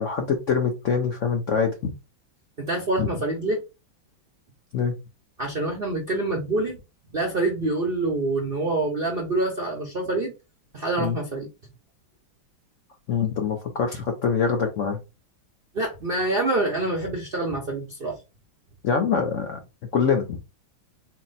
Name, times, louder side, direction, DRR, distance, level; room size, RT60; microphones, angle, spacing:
voice 1, 0.0-1.9 3.0-3.1 4.7-4.9 11.0-11.2 13.1-15.0 18.8-19.6 19.9-20.4, left 6 dB, 75° left, 0.6 m, -24 dB
voice 2, 2.6-3.6 5.4-6.8 7.1-10.3 10.7-11.5 15.7-18.2, right 2 dB, 60° right, 0.6 m, -26 dB
4.3 x 2.0 x 3.9 m
omnidirectional pair, 2.2 m